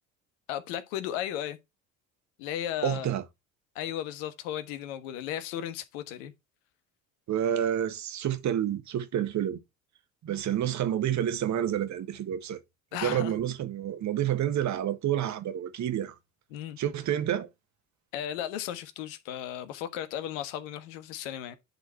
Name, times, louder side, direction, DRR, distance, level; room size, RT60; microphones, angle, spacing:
voice 1, 0.5-1.6 2.4-3.1 3.7-6.3 12.9-13.3 16.5-16.8 18.1-21.6, left 11 dB, 70° left, 1.4 m, -35 dB
voice 2, 2.8-3.2 7.3-9.6 10.2-12.6 13.0-16.1 16.8-17.5, right 10 dB, 45° right, 1.5 m, -29 dB
11.0 x 4.2 x 4.5 m
hypercardioid pair, 65°, 39 cm